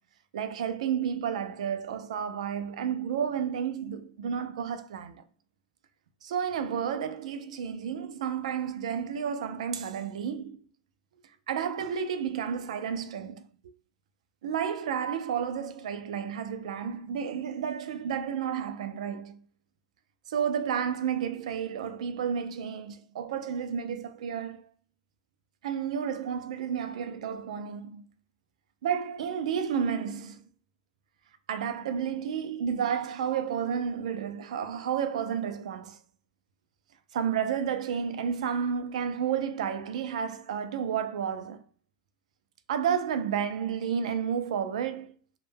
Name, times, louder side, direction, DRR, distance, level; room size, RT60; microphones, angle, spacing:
voice 1, 0.3-5.2 6.2-10.6 11.5-13.4 14.4-19.4 20.3-24.7 25.6-28.0 28.8-30.4 31.5-36.0 37.1-41.6 42.7-45.1, right 7 dB, 70° right, 0.4 m, -31 dB
2.1 x 2.1 x 3.3 m
supercardioid pair, 175°, 4 cm